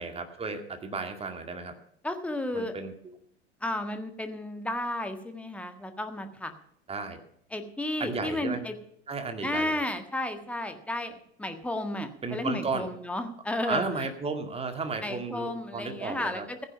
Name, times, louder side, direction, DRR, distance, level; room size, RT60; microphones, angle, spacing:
voice 1, 0.0-1.7 2.5-2.9 6.9-7.2 8.0-8.6 9.1-9.8 12.2-12.9 13.6-16.5, right 4 dB, 20° right, 6 dB, 2.2 m, -33 dB
voice 2, 2.0-2.7 3.6-6.5 7.5-8.7 9.4-13.8 15.0-16.7, left 1 dB, 5° left, 7 dB, 1.6 m, -33 dB
15.0 x 10.5 x 5.6 m, 0.69 s
figure-of-eight pair, 80°, 33 cm